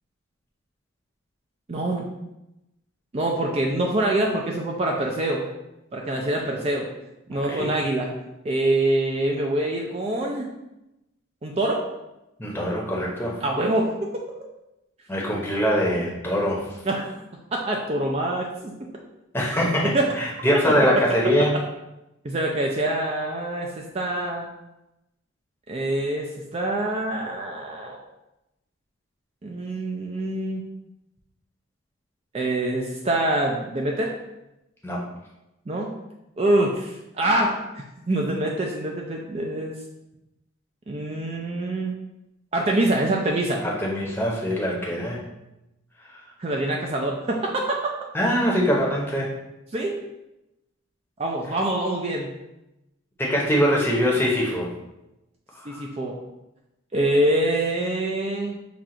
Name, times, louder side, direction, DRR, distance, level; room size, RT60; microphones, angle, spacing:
voice 1, 1.7-2.1 3.1-5.4 5.9-6.9 7.3-8.1 8.4-10.5 11.4-11.8 13.4-14.2 16.9-17.1 17.5-18.7 19.9-20.1 22.2-24.5 25.7-28.0 29.4-30.6 32.3-34.1 35.7-35.9 36.4-37.6 38.1-39.8 40.9-42.0 42.5-43.6 46.4-47.6 49.7-50.0 51.2-52.3 55.7-56.2 56.9-58.6, right 1 dB, 30° right, 0 dB, 0.4 m, -25 dB
voice 2, 7.3-7.7 12.4-13.4 15.1-16.8 19.3-21.5 34.8-35.0 43.6-45.3 46.1-46.2 48.1-49.3 53.2-54.7 55.5-55.8, equal, 10° left, -3 dB, 0.8 m, -23 dB
5.8 x 2.4 x 3.7 m, 0.94 s
head